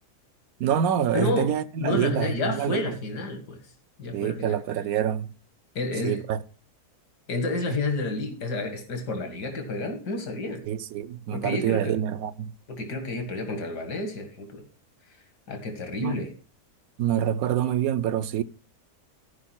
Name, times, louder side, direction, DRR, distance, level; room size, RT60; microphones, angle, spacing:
voice 1, 0.6-2.9 4.1-5.3 6.0-6.4 7.7-7.8 10.7-12.5 16.0-16.2 17.0-18.4, right 10 dB, 70° right, 1.1 m, -26 dB
voice 2, 1.1-1.5 1.8-3.6 4.0-4.6 5.7-6.2 7.3-10.6 11.3-12.0 12.7-14.6 15.5-16.3, left 3 dB, 90° left, 2.5 m, -30 dB
13.5 x 5.2 x 5.8 m
omnidirectional pair, 1.7 m